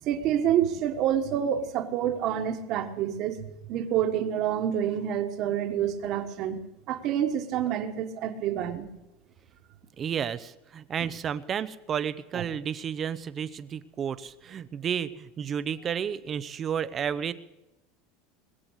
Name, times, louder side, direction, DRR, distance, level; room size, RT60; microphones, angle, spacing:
voice 1, 0.0-6.6 6.9-8.9 12.3-12.4, right 9 dB, 45° right, 6 dB, 1.5 m, -28 dB
voice 2, 10.0-17.3, right 8 dB, 25° right, 14 dB, 0.7 m, -32 dB
21.0 x 7.7 x 8.1 m, 0.94 s
supercardioid pair, 155°, 0 cm